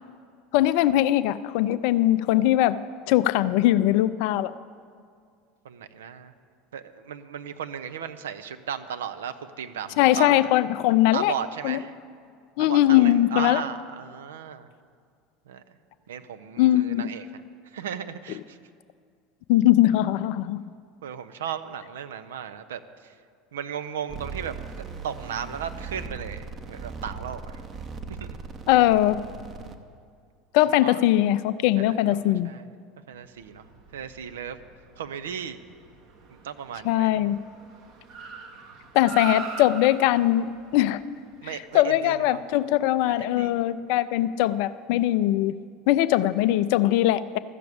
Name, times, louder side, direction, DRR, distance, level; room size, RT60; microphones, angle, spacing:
voice 1, 0.5-2.8 3.1-4.5 10.0-11.3 11.6-11.8 12.6-13.6 16.6-17.0 19.5-20.6 28.7-29.2 30.5-32.5 36.8-37.4 38.9-41.0 41.4-45.5 45.9-47.4, left 14 dB, 55° left, 15 dB, 0.4 m, -21 dB
voice 2, 5.6-6.3 6.7-10.3 11.1-11.9 12.6-14.7 15.5-15.8 16.1-17.3 17.7-18.6 21.0-23.1 23.5-24.7 25.0-27.6 28.1-28.4 30.8-31.0 31.8-32.6 33.1-33.7 33.9-34.6 35.0-35.6 36.3-37.1 41.4-42.4 43.0-43.6, right 8 dB, 70° right, 9 dB, 0.6 m, -35 dB
sound 1, 24.1-29.7, right 5 dB, 35° right, 1.0 m, -38 dB
Car, 33.3-42.8, right 6 dB, 55° right, 1.4 m, -42 dB
13.5 x 6.8 x 8.7 m, 2.2 s
figure-of-eight pair, 75°, 0 cm